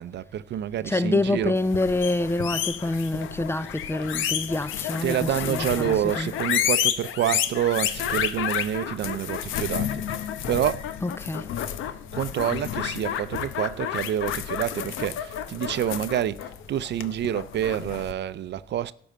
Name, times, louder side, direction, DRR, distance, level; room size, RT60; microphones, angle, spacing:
voice 1, 0.0-1.6 5.0-10.9 12.1-18.9, right 11 dB, 60° right, 0.5 m, -28 dB
voice 2, 0.8-6.3 11.0-11.5, left 2 dB, 10° left, 0.4 m, -27 dB
sound 1, 1.6-18.1, left 10 dB, 90° left, 0.8 m, -30 dB
11.5 x 5.4 x 7.5 m
cardioid pair, 90°, 20 cm